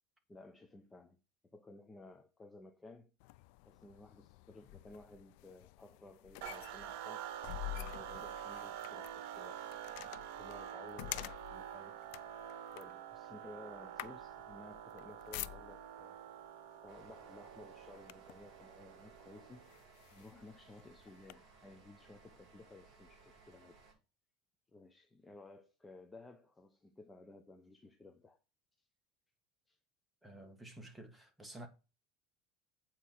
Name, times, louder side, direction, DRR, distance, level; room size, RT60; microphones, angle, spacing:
voice 1, 0.3-3.1 3.7-7.3 7.7-12.0 12.7-16.2 16.8-19.7 20.1-24.0 24.7-28.4 28.8-28.9 29.7-29.8, left 2 dB, 15° left, 0.8 m, -56 dB
sound 1, 3.2-16.0 16.9-17.1 17.5-18.5 19.1-19.2 19.7-21.3, left 18 dB, 70° left, 0.4 m, -48 dB
sound 2, 6.4-19.8, right 10 dB, 70° right, 1.1 m, -47 dB
sound 3, 16.9-23.9, right 4 dB, 35° right, 6.0 m, -63 dB
voice 2, 30.2-31.7, right 1 dB, 5° right, 1.8 m, -51 dB
8.4 x 4.5 x 6.0 m
cardioid pair, 145°, 0 cm